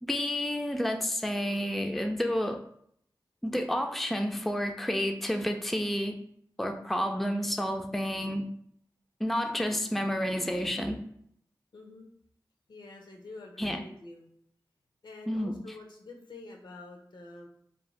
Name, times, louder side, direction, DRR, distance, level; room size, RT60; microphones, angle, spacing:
voice 1, 0.0-2.6 3.4-6.2 6.6-8.5 9.2-11.0 13.6-13.8 15.3-15.6, equal, ahead, 5 dB, 0.3 m, -30 dB
voice 2, 11.7-12.1 12.7-14.3 15.0-17.5, left 3 dB, 75° left, 1 dB, 0.6 m, -47 dB
2.6 x 2.1 x 3.1 m, 0.68 s
cardioid pair, 40°, 8 cm